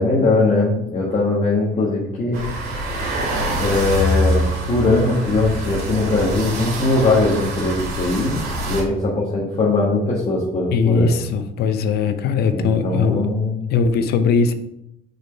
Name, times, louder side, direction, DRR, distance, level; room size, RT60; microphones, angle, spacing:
voice 1, 0.0-2.4 3.6-11.1 12.5-13.7, left 2 dB, 35° left, -4 dB, 1.5 m, -20 dB
sound 1, 2.3-8.8, equal, 70° right, 2.3 m, -24 dB
voice 2, 10.7-13.3 13.7-14.5, left 5 dB, 75° left, 10 dB, 0.7 m, -19 dB
4.8 x 4.8 x 4.5 m, 0.81 s
cardioid pair, 110°, 17 cm